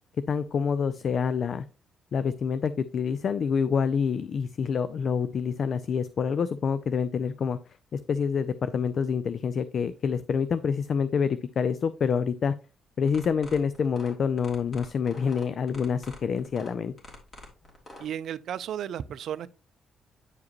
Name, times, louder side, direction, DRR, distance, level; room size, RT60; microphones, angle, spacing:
voice 1, 0.3-1.6 2.1-7.6 7.9-12.5 13.0-16.9, left 6 dB, 55° left, 0.4 m, -27 dB
sound 1, 13.1-18.0, left 1 dB, 35° left, 2.7 m, -46 dB
voice 2, 18.0-19.5, right 10 dB, 70° right, 0.4 m, -34 dB
9.6 x 4.8 x 3.0 m
cardioid pair, 90°, 0 cm